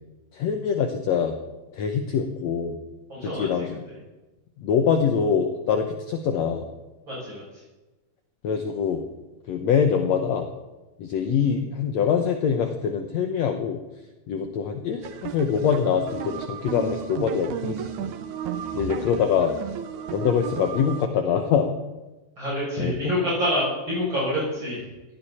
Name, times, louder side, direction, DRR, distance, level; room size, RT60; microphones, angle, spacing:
voice 1, 0.3-1.4 1.7-2.8 3.2-3.9 4.6-6.7 8.4-9.0 9.5-10.5 11.0-13.8 14.3-18.1 18.7-19.5 20.1-21.7 22.8-23.0, left 7 dB, 65° left, 5 dB, 1.9 m, -24 dB
voice 2, 3.1-3.5 7.1-7.4 22.4-24.8, equal, 35° right, -8 dB, 8.0 m, -26 dB
sound 1, 15.0-21.1, right 9 dB, 75° right, 2.1 m, -33 dB
19.5 x 15.5 x 4.3 m, 1.1 s
omnidirectional pair, 3.9 m